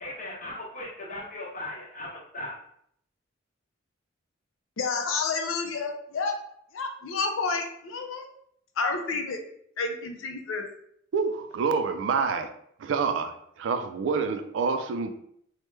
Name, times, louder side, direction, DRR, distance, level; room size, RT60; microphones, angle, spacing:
voice 1, 0.0-2.6, left 1 dB, 40° left, -4 dB, 0.9 m, -38 dB
voice 2, 4.8-6.3 6.7-8.3 8.8-9.4 9.8-10.6, left 4 dB, 75° left, 4 dB, 0.5 m, -30 dB
voice 3, 11.1-12.5 12.8-13.3 13.6-15.1, right 5 dB, 65° right, 7 dB, 0.3 m, -27 dB
3.0 x 2.1 x 3.2 m, 0.68 s
head